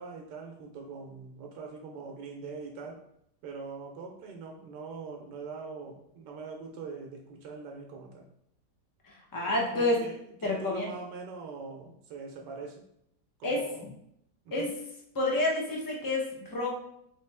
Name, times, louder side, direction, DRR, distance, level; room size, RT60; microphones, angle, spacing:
voice 1, 0.0-3.0 3.4-8.3 9.5-12.8 13.4-13.9 14.4-14.7, right 4 dB, 85° right, 1 dB, 1.3 m, -42 dB
voice 2, 9.0-10.0 10.4-10.9 13.4-13.6 14.5-14.7 15.1-16.8, left 2 dB, 30° left, -2 dB, 0.4 m, -29 dB
4.0 x 3.0 x 3.3 m, 0.74 s
omnidirectional pair, 1.8 m